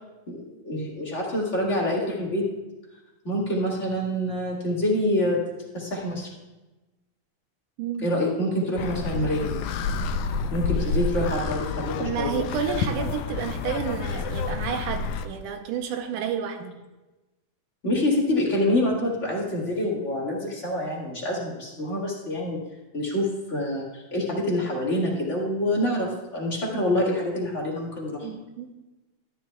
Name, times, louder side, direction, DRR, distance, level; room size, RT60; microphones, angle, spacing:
voice 1, 0.3-2.5 3.2-5.4 5.7-6.3 8.0-9.6 10.5-12.4 17.8-22.6 22.9-28.3, left 1 dB, 25° left, -4 dB, 1.9 m, -26 dB
sound 1, 8.8-15.3, left 4 dB, 80° left, 2.0 m, -29 dB
voice 2, 12.0-16.8 28.2-28.7, right 7 dB, 90° right, 5 dB, 2.3 m, -30 dB
13.0 x 11.0 x 2.3 m, 1.1 s
omnidirectional pair, 3.6 m